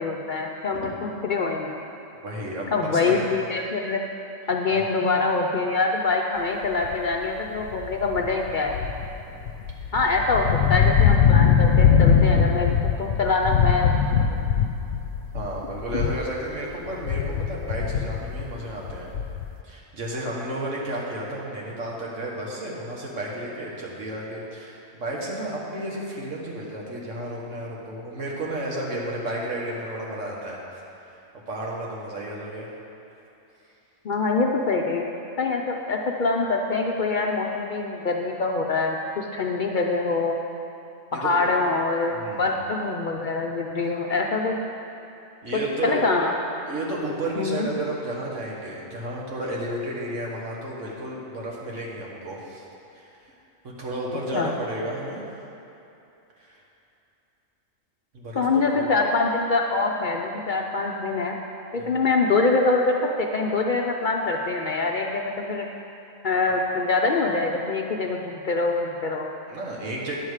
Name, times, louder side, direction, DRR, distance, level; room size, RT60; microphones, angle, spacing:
voice 1, 0.0-1.7 2.7-4.0 4.5-8.7 9.9-14.4 34.0-35.0 35.4-40.4 41.1-42.1 42.4-44.6 45.8-46.3 47.4-47.7 54.3-54.5 58.4-61.3 61.7-65.6 66.2-69.3, left 3 dB, 55° left, 0 dB, 0.6 m, -24 dB
voice 2, 2.2-3.3 4.7-4.8 9.3-9.4 15.3-19.1 19.6-32.7 41.1-41.5 42.1-42.5 45.4-46.1 46.7-52.6 52.9-53.3 53.6-55.3 56.4-56.6 58.1-58.4 58.7-58.8 61.8-61.9 66.5-66.6 69.5-70.2, right 1 dB, 75° right, -3 dB, 1.8 m, -32 dB
sound 1, 6.8-7.1 7.6-16.4 16.7-19.6, left 7 dB, 80° left, 0.9 m, -21 dB
9.9 x 7.2 x 4.8 m, 2.8 s
omnidirectional pair, 1.3 m